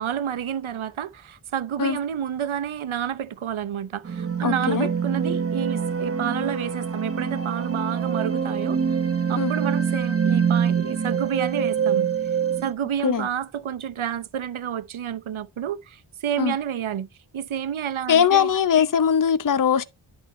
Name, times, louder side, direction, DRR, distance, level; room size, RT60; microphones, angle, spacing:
voice 1, 0.0-8.8 9.3-12.1 12.6-17.1 17.3-18.5, right 9 dB, 75° right, 0.8 m, -29 dB
sound 1, 4.0-12.7, right 7 dB, 30° right, 0.7 m, -25 dB
voice 2, 4.4-4.9 9.3-9.5 13.0-13.3 16.4-16.5 18.1-19.8, left 8 dB, 40° left, 0.7 m, -20 dB
10.5 x 4.4 x 4.2 m
wide cardioid pair, 90°, 49 cm